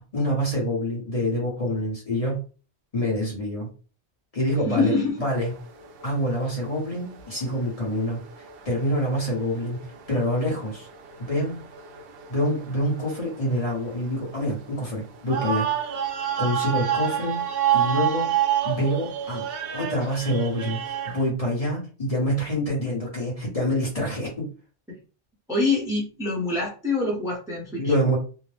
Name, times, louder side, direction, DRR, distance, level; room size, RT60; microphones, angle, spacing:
voice 1, 0.1-2.4 2.9-3.7 4.3-4.9 5.2-5.5 6.0-10.9 11.2-11.5 12.3-15.7 16.4-17.4 17.7-18.3 18.6-19.4 19.7-24.5 27.8-28.2, equal, 35° left, -3 dB, 1.0 m, -26 dB
voice 2, 4.7-5.1 25.5-27.9, left 3 dB, 5° right, -2 dB, 0.6 m, -25 dB
sound 1, 5.2-21.3, right 10 dB, 60° right, 0.7 m, -30 dB
2.7 x 2.0 x 3.2 m, 0.36 s
omnidirectional pair, 1.2 m